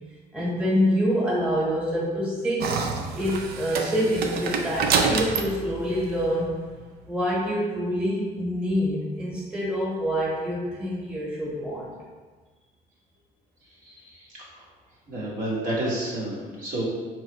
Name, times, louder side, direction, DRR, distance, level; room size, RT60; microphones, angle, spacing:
voice 1, 0.3-2.7 3.1-6.5 7.1-12.0, equal, 5° right, -6 dB, 1.3 m, -26 dB
sound 1, 2.6-6.9, right 4 dB, 70° right, 0.5 m, -28 dB
voice 2, 13.8-14.3 15.1-16.8, right 1 dB, 55° right, -6 dB, 1.2 m, -30 dB
3.9 x 3.1 x 3.0 m, 1.4 s
cardioid pair, 110°, 17 cm